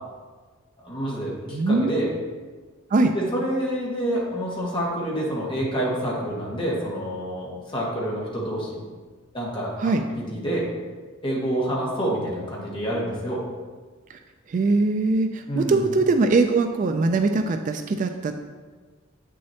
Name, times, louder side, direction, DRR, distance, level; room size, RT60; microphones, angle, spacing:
voice 1, 0.8-2.1 3.1-8.8 9.3-10.7 11.2-13.4 15.5-15.8, right 1 dB, 25° left, -4 dB, 1.6 m, -27 dB
voice 2, 1.5-2.0 2.9-3.1 9.8-10.0 14.1-14.2 14.5-18.3, right 3 dB, 40° right, 7 dB, 0.3 m, -21 dB
7.9 x 6.3 x 2.8 m, 1.4 s
head